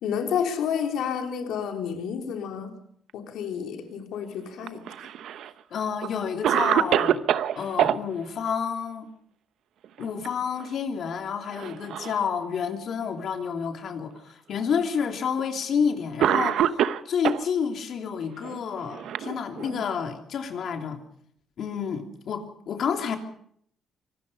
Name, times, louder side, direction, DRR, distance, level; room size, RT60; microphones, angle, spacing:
voice 1, 0.0-2.8 3.1-4.9, left 7 dB, 85° left, 3.4 m, -30 dB
Cough, 4.6-5.5 6.0-6.1 6.4-8.0 9.8-10.3 10.6-10.7 11.5-12.2 13.0-13.1 14.2-14.3 15.4-15.6 16.2-17.5 18.4-19.9, right 10 dB, 75° right, 0.9 m, -25 dB
voice 2, 5.7-7.2 7.6-9.1 10.0-21.0 21.6-23.2, left 6 dB, 60° left, 3.1 m, -29 dB
25.0 x 19.5 x 5.5 m
cardioid pair, 125°, 0 cm